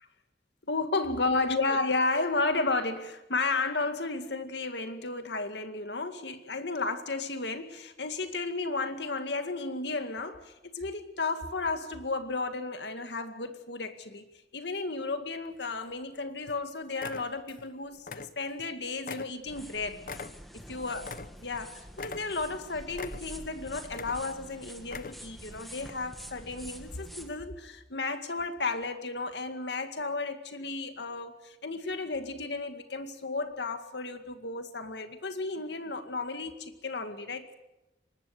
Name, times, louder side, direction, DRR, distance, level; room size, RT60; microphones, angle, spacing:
voice 1, 0.6-14.3 14.5-20.1 20.5-21.1 21.4-37.5, left 3 dB, 80° left, 8 dB, 2.1 m, -33 dB
sound 1, 15.4-16.1 16.5-16.6 16.9-17.7 18.0-18.7 19.0-21.6 21.9-22.6 22.9-23.5 23.9-24.5 24.8-25.4 25.8-25.9, left 4 dB, 50° left, 0.7 m, -42 dB
sound 2, 19.5-27.3, equal, ahead, 1.7 m, -47 dB
24.0 x 20.0 x 6.7 m, 0.96 s
head